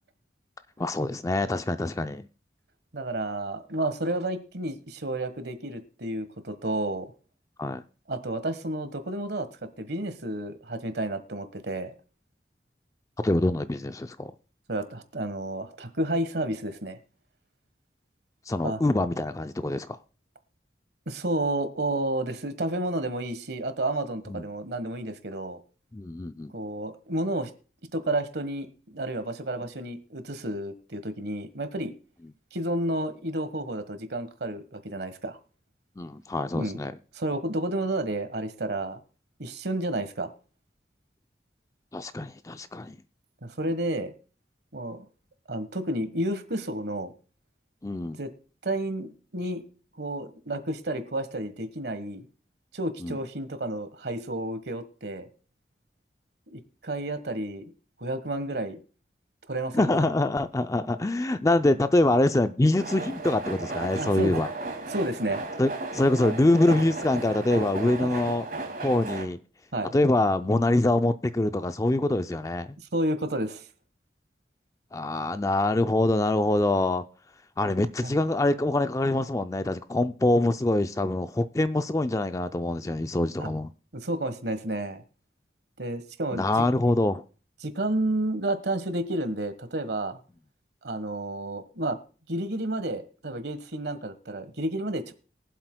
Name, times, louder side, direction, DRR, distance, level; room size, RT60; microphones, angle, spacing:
voice 1, 0.8-2.3 7.6-7.8 13.2-14.3 18.5-20.0 24.3-24.4 25.9-26.5 36.0-36.9 41.9-43.0 47.8-48.2 53.0-53.2 59.7-64.5 65.6-68.4 68.8-69.4 69.9-72.8 74.9-77.0 77.6-83.7 86.3-87.2, left 2 dB, 20° left, 0.4 m, -25 dB
voice 2, 2.9-7.1 8.1-11.9 14.7-17.0 18.6-18.8 21.1-25.6 26.5-27.5 27.9-31.9 32.5-35.4 36.5-36.8 37.1-39.0 39.4-40.3 43.4-44.1 44.7-45.1 45.5-47.1 48.2-48.3 48.6-49.6 50.0-52.2 52.7-55.3 56.5-57.7 58.0-58.8 59.5-60.1 64.0-64.3 64.9-65.4 69.7-69.9 72.8-73.6 78.0-78.1 83.4-83.5 83.9-85.0 85.8-86.4 87.6-90.2 90.8-92.0 92.3-95.1, right 1 dB, 70° right, 1.3 m, -31 dB
sound 1, 62.8-69.2, right 3 dB, 50° right, 2.2 m, -35 dB
23.0 x 7.8 x 2.2 m
head